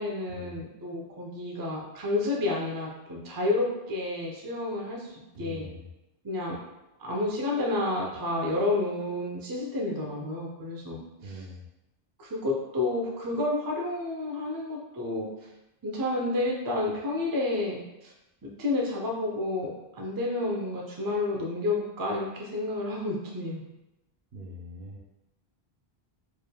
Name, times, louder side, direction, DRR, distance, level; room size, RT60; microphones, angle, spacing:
voice 1, 0.0-5.7 6.2-6.6 7.0-11.4 12.2-15.3 15.8-18.1 18.4-23.6, left 2 dB, 25° right, -2 dB, 0.5 m, -30 dB
voice 2, 5.3-5.8 11.2-11.6 24.3-25.1, equal, 65° right, -1 dB, 0.8 m, -42 dB
4.6 x 3.3 x 2.2 m, 0.96 s
omnidirectional pair, 1.1 m